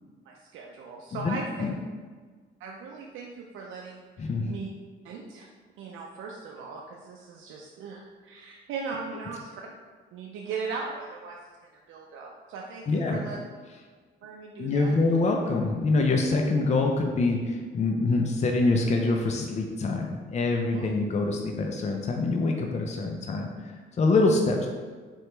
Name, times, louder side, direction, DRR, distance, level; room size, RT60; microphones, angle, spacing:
voice 1, 0.3-1.5 2.6-4.7 5.0-5.5 5.8-9.5 10.1-11.4 11.9-13.4 14.2-15.0 20.7-20.9, right 5 dB, 80° right, -1 dB, 0.5 m, -38 dB
voice 2, 1.1-1.7 4.2-4.5 12.9-13.2 14.6-23.5 24.0-24.7, left 3 dB, 35° left, 2 dB, 0.5 m, -25 dB
4.5 x 2.9 x 3.3 m, 1.5 s
cardioid pair, 90°, 20 cm